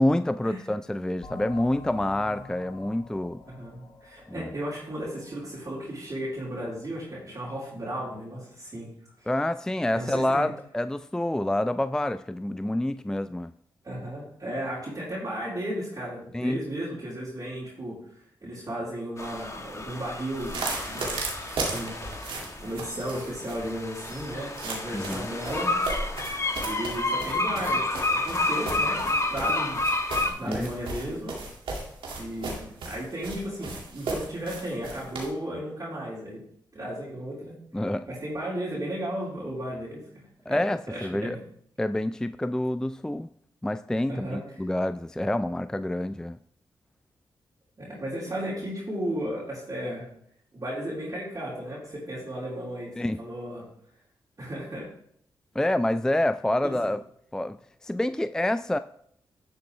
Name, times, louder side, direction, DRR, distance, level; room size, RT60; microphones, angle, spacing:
voice 1, 0.0-3.4 4.3-4.5 9.3-13.5 16.3-16.6 24.9-25.3 30.5-30.7 37.7-38.1 40.5-41.4 41.8-43.3 43.6-46.4 53.0-53.2 55.6-57.0 57.3-58.8, left 1 dB, 5° left, 12 dB, 0.3 m, -27 dB
sound 1, 1.2-6.5, left 4 dB, 70° left, 2.5 m, -47 dB
voice 2, 3.5-8.9 9.2-9.3 9.9-10.5 13.8-18.0 18.4-21.1 21.6-25.7 26.6-29.8 30.1-31.4 32.2-36.4 36.7-37.6 38.1-40.0 40.5-41.4 44.1-44.4 47.8-50.1 50.5-53.7 54.4-54.9 56.6-56.7, right 1 dB, 40° right, -9 dB, 3.9 m, -35 dB
sound 2, 19.2-30.3, left 2 dB, 35° left, 1.5 m, -30 dB
sound 3, 20.3-35.3, right 3 dB, 85° right, 2.2 m, -36 dB
11.5 x 6.5 x 3.3 m, 0.67 s
cardioid pair, 55°, 9 cm